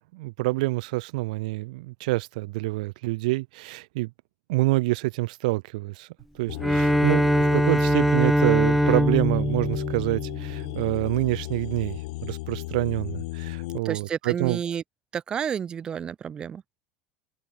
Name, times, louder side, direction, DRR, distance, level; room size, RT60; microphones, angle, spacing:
voice 1, 0.0-4.1 4.5-6.1 6.4-14.6, right 21 dB, 85° right, 3.5 m, -27 dB
sound 1, 6.5-13.8, left 21 dB, 85° left, 6.0 m, -34 dB
Bowed string instrument, 6.6-10.9, equal, ahead, 1.5 m, -22 dB
voice 2, 13.8-14.8 15.1-16.6, right 8 dB, 20° right, 2.8 m, -30 dB
cardioid pair, 175°, 4 cm